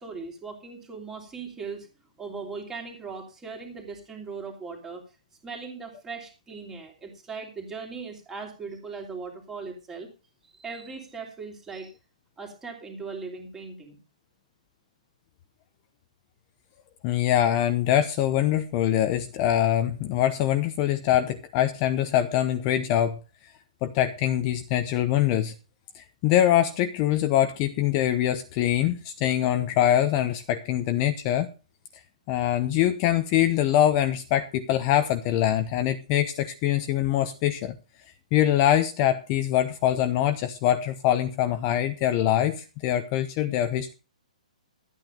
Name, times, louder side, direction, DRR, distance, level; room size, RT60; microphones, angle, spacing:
voice 1, 0.0-1.9 2.2-5.0 5.4-10.1 10.4-11.9 12.4-14.0, right 4 dB, 10° right, 3 dB, 2.9 m, -39 dB
voice 2, 17.0-23.2 23.8-25.5 25.9-31.5 32.3-37.7 38.3-43.9, left 12 dB, 25° left, 9 dB, 0.8 m, -24 dB
12.5 x 9.0 x 5.2 m, 0.32 s
hypercardioid pair, 160°, 4 cm